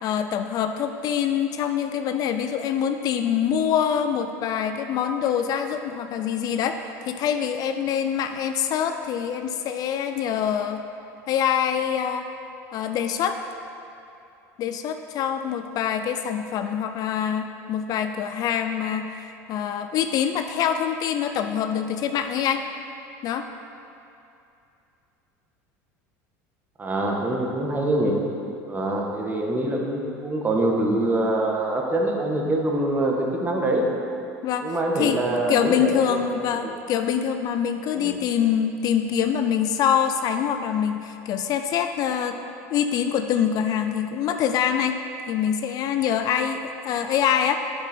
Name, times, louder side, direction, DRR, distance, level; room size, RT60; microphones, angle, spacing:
voice 1, 0.0-10.8 11.3-12.3 12.7-13.4 14.6-22.6 23.2-23.5 34.4-35.2 35.5-42.4 42.7-45.0 45.3-47.5, left 8 dB, 50° left, 7 dB, 0.4 m, -25 dB
voice 2, 26.8-28.1 28.7-33.9 34.6-36.3 38.0-38.2, right 1 dB, 20° right, 0 dB, 1.3 m, -24 dB
7.2 x 6.8 x 4.2 m, 2.7 s
supercardioid pair, 95°, 8 cm